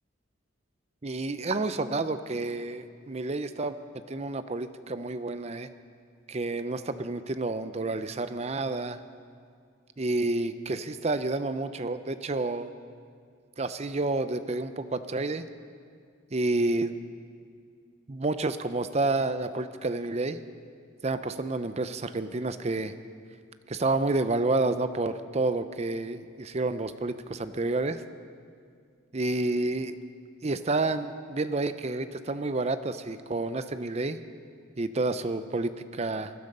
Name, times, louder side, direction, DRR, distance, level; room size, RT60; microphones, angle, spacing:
voice 1, 1.0-5.7 6.3-9.0 10.0-12.7 13.6-15.4 16.3-16.9 18.1-20.4 21.0-22.9 23.7-28.0 29.1-30.0 30.4-34.2 34.8-36.3, right 2 dB, 30° right, 11 dB, 0.6 m, -29 dB
20.5 x 12.0 x 5.4 m, 2.1 s
head